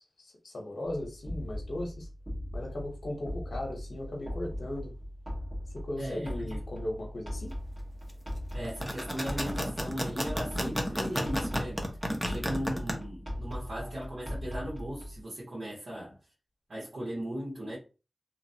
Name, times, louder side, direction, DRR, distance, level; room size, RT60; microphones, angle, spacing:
voice 1, 0.0-2.1 2.5-4.9 5.7-7.6, left 1 dB, 80° left, 0.8 m, -37 dB
sound 1, 0.8-15.2, equal, 40° right, 1.3 m, -39 dB
voice 2, 6.0-6.3 8.5-11.8 12.2-16.2 16.7-17.8, equal, 75° right, 1.4 m, -37 dB
sound 2, 8.6-12.9, equal, 10° right, 0.7 m, -32 dB
2.9 x 2.4 x 2.7 m
wide cardioid pair, 60°, 0 cm